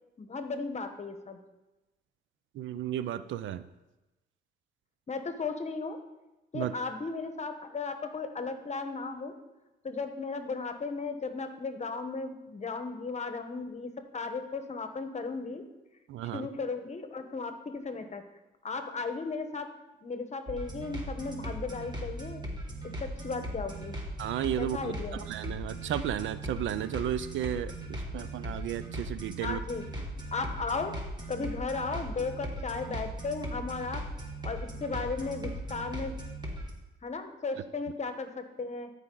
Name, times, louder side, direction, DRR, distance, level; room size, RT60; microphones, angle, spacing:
voice 1, 0.2-1.4 5.1-6.0 6.5-9.3 9.8-15.6 16.3-18.2 18.6-19.7 20.0-22.4 23.0-23.9 24.6-25.2 29.4-31.0 31.3-34.1 34.4-36.2 37.0-38.9, left 4 dB, 35° left, 8 dB, 1.1 m, -35 dB
voice 2, 2.5-3.7 6.5-6.7 16.1-16.5 24.2-29.6, right 11 dB, 75° right, 13 dB, 0.5 m, -34 dB
sound 1, 20.5-36.7, right 1 dB, 20° right, 2.0 m, -39 dB
14.0 x 4.9 x 3.9 m, 1.0 s
cardioid pair, 90°, 20 cm